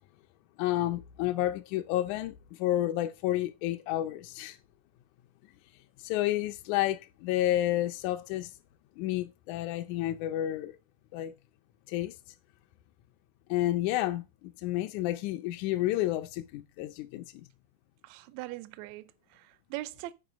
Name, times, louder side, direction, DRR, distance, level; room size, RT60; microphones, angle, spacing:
voice 1, 0.6-4.6 6.0-8.5 9.0-10.7 11.1-11.3 11.9-12.1 13.5-17.4, left 14 dB, 80° left, 1.8 m, -30 dB
voice 2, 18.0-20.1, right 17 dB, 80° right, 1.7 m, -41 dB
7.9 x 4.9 x 5.0 m
omnidirectional pair, 3.6 m